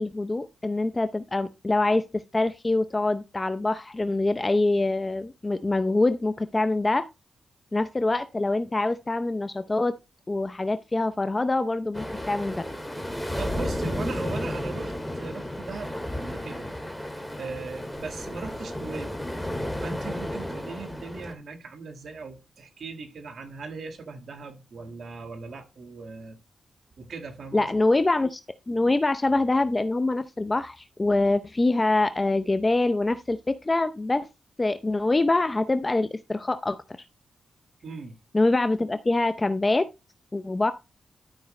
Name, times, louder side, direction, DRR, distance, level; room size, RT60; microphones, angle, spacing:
voice 1, 0.0-7.1 7.7-9.9 10.3-12.7 27.5-28.4 28.7-34.3 34.6-36.8 38.3-39.9 40.3-40.7, left 2 dB, 25° left, 0.6 m, -25 dB
sound 1, 11.9-21.3, left 1 dB, ahead, 2.0 m, -33 dB
voice 2, 13.4-16.7 17.4-19.2 19.8-26.4 27.0-27.7 37.8-38.2, right 4 dB, 65° right, 1.8 m, -39 dB
12.5 x 5.0 x 3.2 m
cardioid pair, 70°, 0 cm